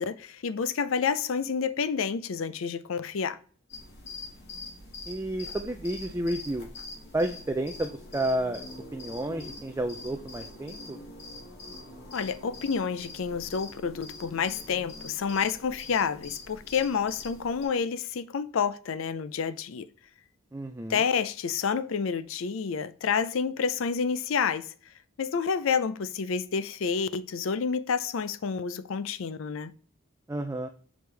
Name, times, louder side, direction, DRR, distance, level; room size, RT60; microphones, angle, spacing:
voice 1, 0.0-3.4 12.1-19.9 20.9-24.7 25.2-29.7, left 6 dB, 65° left, 0.4 m, -29 dB
sound 1, 3.7-17.6, left 2 dB, 50° left, 1.7 m, -44 dB
voice 2, 5.1-6.7 7.1-8.6 8.9-11.0 20.5-21.0 30.3-30.7, right 1 dB, 15° right, 0.3 m, -31 dB
6.2 x 5.0 x 3.2 m
head